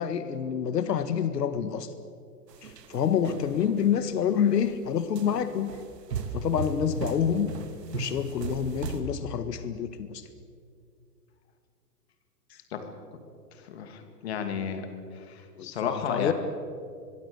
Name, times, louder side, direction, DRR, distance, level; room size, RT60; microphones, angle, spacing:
voice 1, 0.0-1.9 2.6-5.7 6.3-7.5 7.9-10.3 12.5-12.6 15.6-16.3, left 8 dB, 85° left, 11 dB, 1.8 m, -27 dB
sound 1, 2.5-3.9 4.4-4.7 5.2-9.0, right 5 dB, 90° right, 2.9 m, -36 dB
voice 2, 13.5-14.9 15.1-16.3, left 7 dB, 40° left, 6 dB, 2.7 m, -33 dB
25.5 x 23.0 x 7.0 m, 2.3 s
hypercardioid pair, 180°, 47 cm